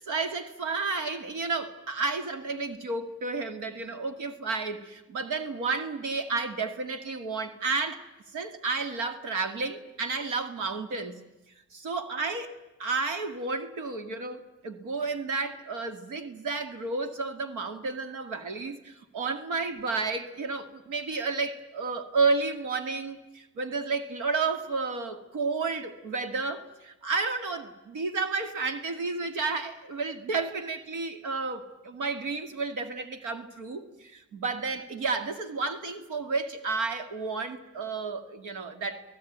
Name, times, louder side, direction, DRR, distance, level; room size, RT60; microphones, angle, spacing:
voice 1, 0.0-8.0 8.3-11.2 11.7-12.5 12.8-39.0, right 4 dB, 85° right, 2.1 m, -31 dB
29.5 x 18.0 x 9.3 m
cardioid pair, 90°, 30 cm